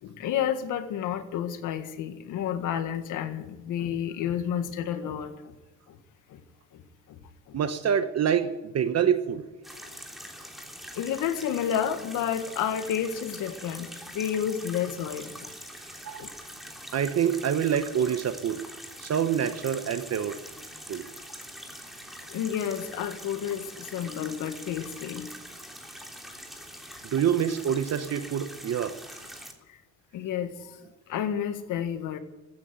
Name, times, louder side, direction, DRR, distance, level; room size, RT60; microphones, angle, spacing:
voice 1, 0.0-5.5 5.9-6.0 6.3-6.4 6.7-6.8 7.1-7.2 7.5-7.6 10.9-15.5 16.2-16.3 22.3-25.4 29.7-29.8 30.1-30.8 31.1-32.2, left 9 dB, 85° left, 9 dB, 1.7 m, -31 dB
voice 2, 7.5-9.5 16.0-16.3 16.9-18.6 19.0-20.4 20.9-21.0 27.0-29.0, right 8 dB, 55° right, 9 dB, 1.1 m, -26 dB
sound 1, 9.6-29.5, equal, ahead, 3.3 m, -44 dB
15.5 x 9.8 x 9.4 m, 1.1 s
cardioid pair, 90°, 30 cm